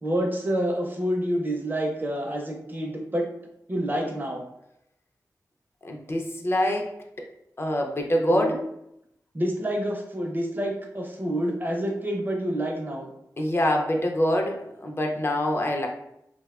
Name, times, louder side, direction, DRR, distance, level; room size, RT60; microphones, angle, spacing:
voice 1, 0.0-3.3 3.7-4.4 8.3-8.5 9.3-13.1, equal, 30° right, 1 dB, 0.5 m, -28 dB
voice 2, 5.8-7.3 7.6-8.6 13.4-15.9, left 1 dB, 35° left, 1 dB, 0.4 m, -25 dB
2.5 x 2.1 x 2.3 m, 0.80 s
wide cardioid pair, 65°, 7 cm